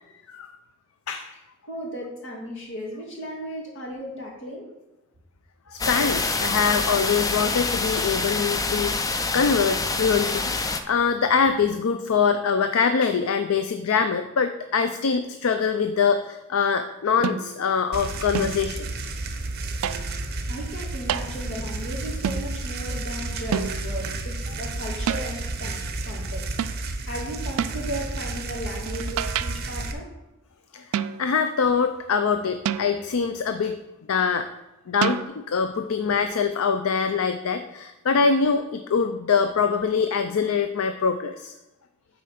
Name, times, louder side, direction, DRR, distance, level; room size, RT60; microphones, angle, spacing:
voice 1, 1.6-4.7 11.3-11.4 20.5-26.4 27.0-30.0, equal, 60° left, -2 dB, 2.3 m, -36 dB
voice 2, 5.7-18.9 30.7-30.8 31.2-33.8 34.1-34.5 34.9-41.5, left 6 dB, 75° left, 9 dB, 0.4 m, -24 dB
sound 1, 5.8-10.8, left 3 dB, 15° left, 0.4 m, -26 dB
sound 2, 17.2-17.7 18.3-18.7 19.8-20.2 21.1-21.4 22.2-22.5 23.5-24.0 25.1-25.4 26.6-26.9 27.6-27.9 28.9-29.7 30.9-31.4 32.6-33.2 35.0-35.2, right 8 dB, 80° right, 0.4 m, -29 dB
sound 3, 17.9-29.9, right 2 dB, 50° right, 0.9 m, -32 dB
8.5 x 4.3 x 5.7 m, 1.0 s
head